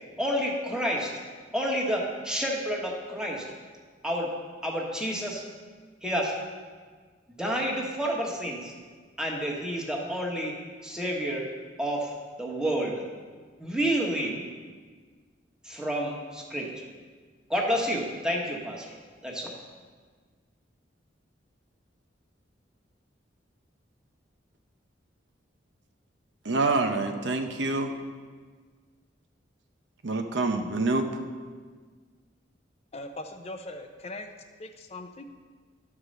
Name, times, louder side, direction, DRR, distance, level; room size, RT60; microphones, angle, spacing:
voice 1, 0.2-1.1 1.5-3.4 4.0-4.3 4.6-5.4 6.0-6.3 7.4-8.7 9.2-10.5 10.8-11.5 11.8-12.1 12.4-13.0 13.6-14.4 15.6-16.7 17.5-19.0 19.2-19.5, equal, 5° right, -2 dB, 1.3 m, -29 dB
voice 2, 26.4-27.9 30.0-31.1, right 3 dB, 65° right, 6 dB, 0.7 m, -26 dB
voice 3, 32.9-34.3 34.6-35.2, left 2 dB, 35° left, 5 dB, 0.5 m, -40 dB
11.5 x 4.9 x 6.5 m, 1.5 s
head